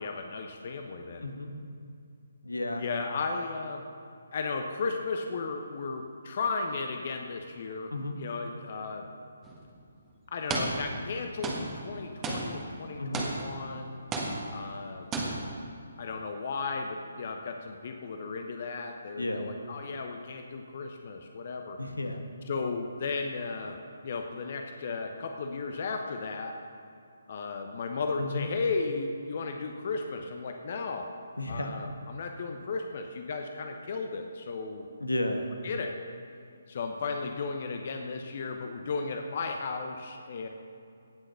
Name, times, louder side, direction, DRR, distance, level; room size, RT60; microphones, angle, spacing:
voice 1, 0.0-1.3 2.8-3.8 4.3-9.1 10.3-14.0 14.5-15.1 16.0-21.8 22.4-23.8 24.0-26.5 27.3-31.1 31.5-34.9 35.6-35.9 36.7-40.5, left 4 dB, 45° left, 4 dB, 1.0 m, -35 dB
voice 2, 1.2-1.5 2.4-2.8 7.9-8.2 13.0-13.3 19.2-19.5 21.8-22.2 28.2-28.5 31.4-31.7 35.0-35.5, left 1 dB, 75° left, 5 dB, 1.4 m, -32 dB
sound 1, 9.4-9.6 10.5-11.1 11.4-13.8 14.1-14.8 15.1-15.7, right 2 dB, 15° right, 1.6 m, -34 dB
17.5 x 6.3 x 6.7 m, 2.4 s
figure-of-eight pair, 140°, 0 cm